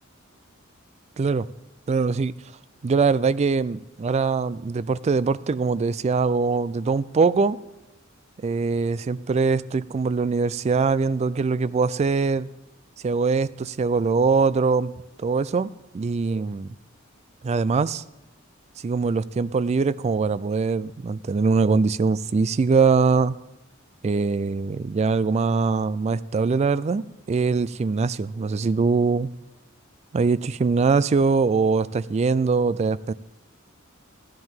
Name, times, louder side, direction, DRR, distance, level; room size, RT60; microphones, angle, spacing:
voice 1, 1.9-2.3 2.8-7.6 8.4-12.5 13.0-14.9 15.2-16.7 17.4-18.0 18.8-23.4 24.0-29.3 30.1-33.1, right 4 dB, 35° right, 17 dB, 0.3 m, -22 dB
14.0 x 10.5 x 3.6 m, 0.96 s
head